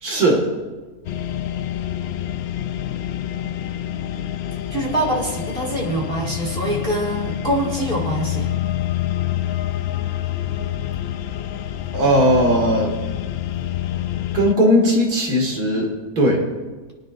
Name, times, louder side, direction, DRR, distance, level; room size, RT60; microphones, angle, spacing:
voice 1, 0.0-0.4 11.9-12.9 14.3-15.9 16.2-16.4, equal, 75° right, 0 dB, 2.6 m, -17 dB
sound 1, 1.1-14.5, left 12 dB, 80° left, 0.5 m, -27 dB
voice 2, 4.7-8.5, right 1 dB, 35° right, -3 dB, 2.2 m, -24 dB
22.0 x 9.3 x 2.6 m, 1.3 s
omnidirectional pair, 1.7 m